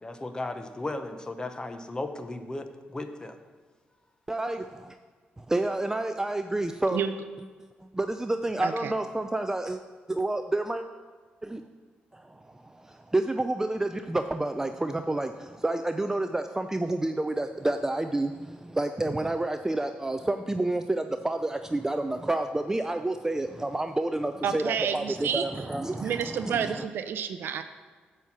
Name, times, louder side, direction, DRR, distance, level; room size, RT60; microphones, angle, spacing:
voice 1, 0.0-3.4, left 2 dB, 20° left, 7 dB, 0.8 m, -35 dB
voice 2, 4.3-4.9 5.4-7.0 7.9-9.8 10.1-10.8 11.4-11.6 12.1-26.9, right 2 dB, 15° right, 7 dB, 0.4 m, -29 dB
voice 3, 8.6-8.9 24.4-25.5 26.0-27.6, right 8 dB, 75° right, 9 dB, 0.5 m, -30 dB
8.1 x 4.4 x 7.1 m, 1.4 s
cardioid pair, 80°, 4 cm